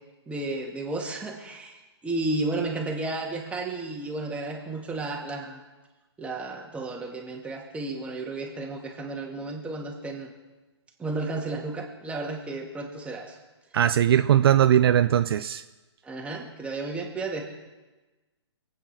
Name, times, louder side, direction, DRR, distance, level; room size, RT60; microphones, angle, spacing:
voice 1, 0.3-5.6 6.2-10.3 11.0-13.4 16.0-17.5, right 2 dB, 10° right, 0 dB, 2.5 m, -33 dB
voice 2, 13.7-15.6, right 10 dB, 55° right, 11 dB, 0.6 m, -20 dB
25.5 x 9.2 x 6.1 m, 1.2 s
hypercardioid pair, 135°, 15 cm